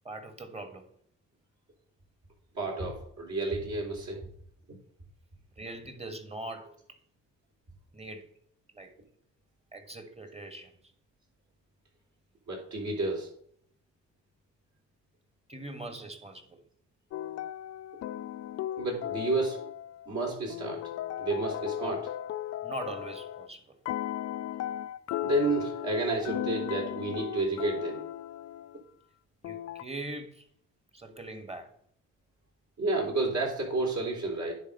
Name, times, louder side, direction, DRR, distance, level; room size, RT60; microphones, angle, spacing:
voice 1, 0.0-0.8 5.6-6.7 7.9-8.3 8.7-8.9 9.7-10.7 15.5-16.6 21.8-22.0 22.6-23.7 29.4-30.4 30.9-31.7, right 2 dB, 20° right, 8 dB, 1.6 m, -41 dB
voice 2, 2.6-4.3 4.7-4.8 12.5-13.3 18.8-19.6 20.1-20.8 21.2-22.0 25.2-28.0 32.8-34.5, right 2 dB, 55° right, -2 dB, 3.7 m, -30 dB
sound 1, 17.1-20.1 20.5-23.5 23.8-28.8 29.4-29.8, left 12 dB, 50° left, 0.4 m, -36 dB
9.8 x 3.8 x 5.5 m, 0.65 s
supercardioid pair, 55°, 34 cm